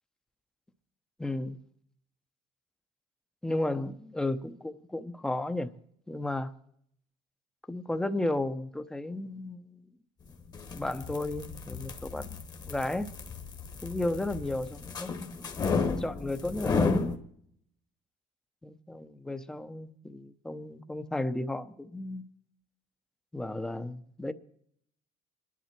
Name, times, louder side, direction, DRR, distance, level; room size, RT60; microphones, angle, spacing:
voice 1, 1.2-1.6 3.4-5.7 6.1-6.5 7.7-9.9 10.7-12.4 12.6-13.1 13.8-17.1 18.6-22.3 23.3-24.3, left 2 dB, 5° left, 0.7 m, -34 dB
sound 1, 10.4-17.2, left 4 dB, 30° left, 1.3 m, -33 dB
27.5 x 11.0 x 4.4 m
cardioid pair, 165°, 14 cm